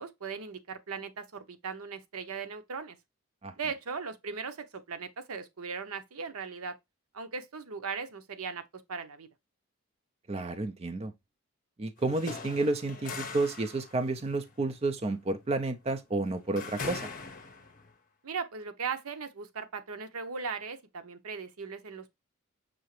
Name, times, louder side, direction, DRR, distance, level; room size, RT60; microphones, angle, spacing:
voice 1, 0.0-3.0 3.6-6.8 7.1-9.3 18.2-22.1, right 5 dB, 85° right, 0.7 m, -38 dB
voice 2, 10.3-11.1 11.8-17.0, right 2 dB, 30° right, 0.4 m, -31 dB
sound 1, 12.0-17.9, left 4 dB, 40° left, 0.9 m, -42 dB
6.2 x 2.8 x 3.0 m
head